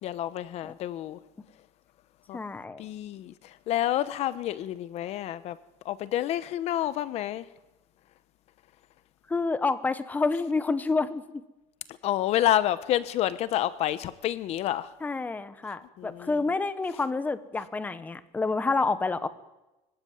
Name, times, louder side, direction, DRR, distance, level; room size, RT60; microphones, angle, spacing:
voice 1, 0.0-1.2 2.3-2.4 2.8-3.3 3.7-5.6 5.8-7.4 12.0-14.9 16.0-16.3, left 13 dB, 55° left, 15 dB, 0.9 m, -28 dB
voice 2, 2.3-2.8 9.3-11.2 15.0-19.3, left 3 dB, 10° left, 13 dB, 1.1 m, -28 dB
24.5 x 16.0 x 9.5 m, 1.0 s
cardioid pair, 165°, 13 cm